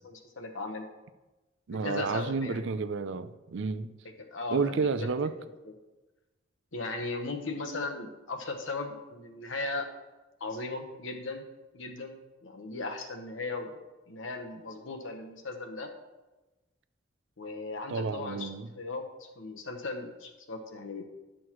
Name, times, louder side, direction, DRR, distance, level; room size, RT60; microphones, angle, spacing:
voice 1, 0.0-0.9 1.7-2.7 4.3-5.1 5.4-5.7 6.7-9.9 10.4-11.4 11.7-12.2 12.4-13.8 14.1-15.9 17.4-21.0, left 3 dB, 75° left, 1.1 m, -37 dB
voice 2, 1.7-3.9 4.5-5.3 17.9-18.7, right 4 dB, 70° right, 0.5 m, -30 dB
11.0 x 6.3 x 3.0 m
head